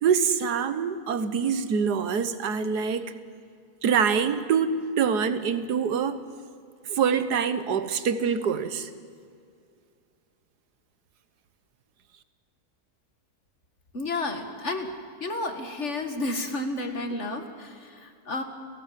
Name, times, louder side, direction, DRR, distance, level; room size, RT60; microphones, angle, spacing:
voice 1, 0.0-3.1 3.8-6.2 6.9-8.9, right 6 dB, 85° right, 12 dB, 1.7 m, -25 dB
voice 2, 13.9-14.9 15.2-18.4, left 2 dB, 45° left, 7 dB, 2.2 m, -31 dB
29.5 x 18.5 x 7.6 m, 2.3 s
omnidirectional pair, 1.7 m